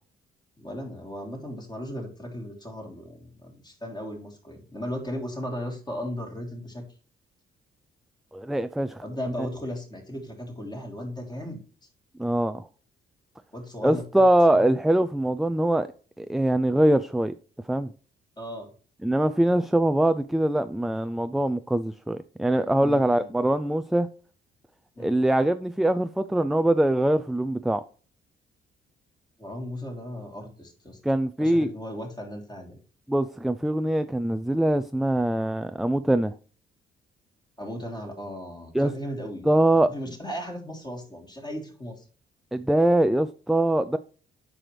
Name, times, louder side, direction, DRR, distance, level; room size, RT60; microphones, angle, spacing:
voice 1, 0.6-6.8 9.0-11.6 13.5-14.3 14.5-14.7 18.4-18.7 22.8-23.5 24.9-25.2 29.4-31.0 31.4-32.8 37.6-39.5 39.8-42.0, equal, 20° left, 3.4 m, -36 dB
voice 2, 8.3-9.0 12.2-12.6 13.8-15.9 16.2-17.3 17.7-17.9 19.0-24.1 25.0-27.8 31.0-31.7 33.1-36.3 38.7-38.9 39.5-39.9 42.5-44.0, right 1 dB, ahead, 0.4 m, -23 dB
8.8 x 6.2 x 3.3 m
cardioid pair, 90°, 20 cm